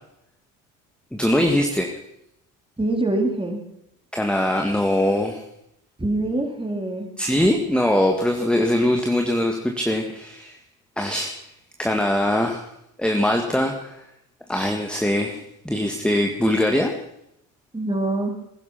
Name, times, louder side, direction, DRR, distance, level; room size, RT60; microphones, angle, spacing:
voice 1, 1.1-1.9 4.1-5.4 7.2-10.6 11.0-11.4 11.8-12.7 13.0-14.0 14.5-16.9, left 1 dB, ahead, 3 dB, 1.9 m, -22 dB
voice 2, 2.8-3.6 6.0-7.1 17.7-18.4, right 2 dB, 15° right, 3 dB, 3.9 m, -24 dB
20.0 x 10.5 x 5.9 m, 0.78 s
hypercardioid pair, 65°, 40 cm